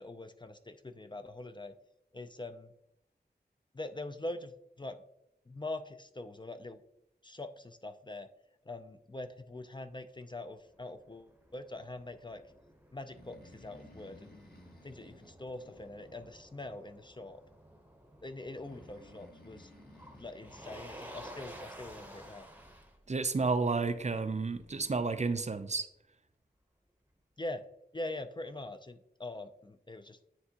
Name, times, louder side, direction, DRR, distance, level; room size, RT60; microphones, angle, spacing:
voice 1, 0.0-1.7 2.1-2.7 3.7-5.0 5.5-6.8 7.2-8.3 8.7-12.4 12.9-14.4 14.8-17.4 18.2-19.7 20.1-22.5 27.4-27.6 27.9-30.2, left 2 dB, 25° left, 8 dB, 0.4 m, -43 dB
Motor vehicle (road), 10.6-25.5, equal, 10° right, 0.8 m, -53 dB
Breathing, 13.0-16.7 18.5-21.6, left 1 dB, 60° left, 1.6 m, -57 dB
voice 2, 23.1-25.9, right 4 dB, 40° right, 10 dB, 0.5 m, -31 dB
9.4 x 3.5 x 2.8 m, 0.79 s
wide cardioid pair, 75°, 18 cm